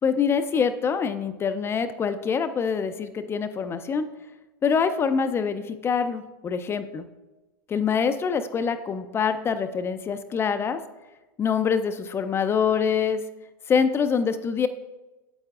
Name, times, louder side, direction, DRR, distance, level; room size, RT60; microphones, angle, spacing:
voice 1, 0.0-4.1 4.6-7.1 7.7-10.8 11.4-13.2 13.7-14.7, left 6 dB, 20° left, 10 dB, 0.4 m, -25 dB
8.9 x 7.8 x 2.4 m, 1.1 s
hypercardioid pair, 120°, 12 cm